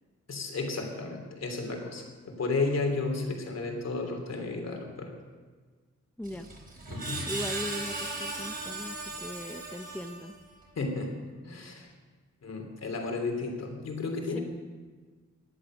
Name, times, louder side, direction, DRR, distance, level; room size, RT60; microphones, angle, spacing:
voice 1, 0.3-5.1 6.9-7.2 10.7-11.1 11.4-11.9 12.4-14.4, left 3 dB, 60° left, 3 dB, 3.1 m, -33 dB
Screech, 6.2-10.5, right 2 dB, 30° right, 4.3 m, -37 dB
voice 2, 7.3-10.4, left 1 dB, 5° left, 6 dB, 0.6 m, -39 dB
17.0 x 11.0 x 6.3 m, 1.4 s
wide cardioid pair, 160°, 29 cm